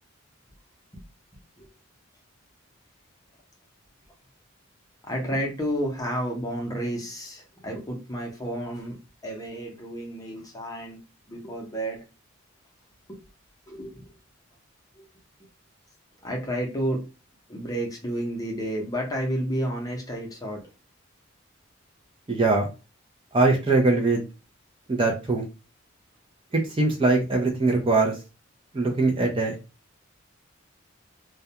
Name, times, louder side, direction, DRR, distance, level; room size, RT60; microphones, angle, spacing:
voice 1, 5.1-9.0 9.2-11.0 11.3-12.0 13.1-13.2 13.7-14.1 15.0-15.1 16.2-17.0 17.5-20.6, equal, 20° left, 0 dB, 0.6 m, -31 dB
voice 2, 22.3-22.7 23.3-24.2 24.9-25.5 26.5-28.1 28.7-29.5, right 3 dB, 25° right, 1 dB, 0.4 m, -22 dB
2.3 x 2.2 x 2.7 m, 0.29 s
head